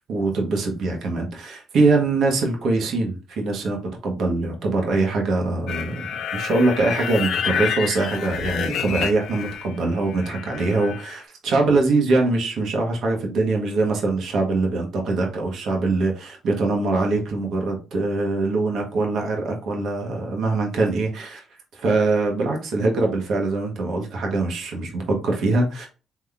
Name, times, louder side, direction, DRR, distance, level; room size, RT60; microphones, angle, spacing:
voice 1, 0.1-3.8 4.0-6.1 6.3-21.4 21.7-25.9, right 3 dB, 70° right, 1 dB, 1.3 m, -23 dB
sound 1, 5.7-9.8 10.0-11.1, left 8 dB, 70° left, 0.5 m, -29 dB
4.0 x 3.0 x 3.4 m, 0.33 s
supercardioid pair, 75°, 0 cm